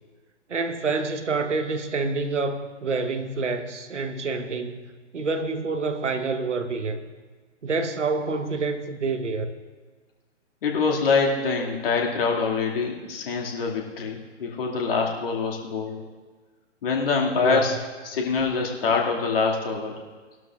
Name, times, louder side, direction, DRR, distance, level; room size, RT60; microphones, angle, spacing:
voice 1, 0.5-4.8 5.1-7.0 7.6-9.5 17.4-17.8, right 4 dB, 75° right, 9 dB, 1.1 m, -27 dB
voice 2, 10.6-16.0 16.8-17.8 18.0-20.0, left 4 dB, 50° left, 0 dB, 2.1 m, -25 dB
19.5 x 12.0 x 2.4 m, 1.4 s
figure-of-eight pair, 120°, 36 cm